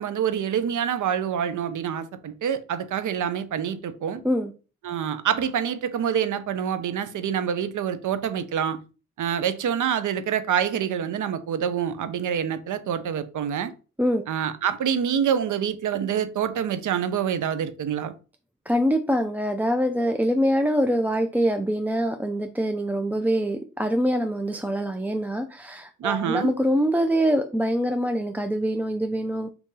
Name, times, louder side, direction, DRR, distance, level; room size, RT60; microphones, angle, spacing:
voice 1, 0.0-4.2 4.8-8.8 9.2-13.7 14.3-18.1 26.0-26.5, right 8 dB, 60° right, 0.6 m, -26 dB
voice 2, 18.7-29.5, equal, 5° right, 0.3 m, -24 dB
2.9 x 2.6 x 3.7 m
supercardioid pair, 50°, 34 cm